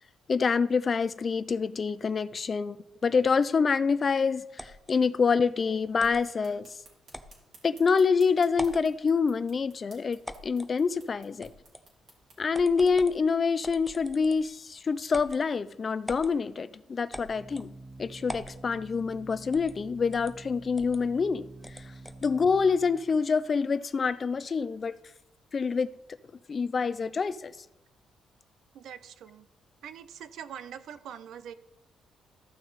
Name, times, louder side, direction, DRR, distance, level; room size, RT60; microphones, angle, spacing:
voice 1, 0.3-2.8 3.0-6.7 7.6-11.5 12.4-17.7 18.0-21.5 21.7-21.8 22.2-25.0 25.5-25.9 26.5-27.5, left 5 dB, 40° left, 16 dB, 0.4 m, -26 dB
sound 1, 4.6-5.0 6.0-6.2 7.1-7.3 7.9-8.0 8.5-8.9 10.2-10.7 11.4-11.9 12.5-13.2 13.6-14.5 15.1-15.4 16.1-16.3 17.1-17.7 18.3-18.6 19.5-19.8 20.1-20.3 20.8-21.0 21.6-22.3, equal, 5° left, 0.7 m, -42 dB
sound 2, 6.0-12.4, right 3 dB, 55° right, 3.2 m, -58 dB
Organ, 15.5-26.0, right 2 dB, 15° right, 1.0 m, -49 dB
voice 2, 28.7-29.5 29.8-31.5, right 9 dB, 75° right, 14 dB, 0.5 m, -43 dB
13.5 x 6.1 x 4.0 m, 0.91 s
cardioid pair, 90°, 0 cm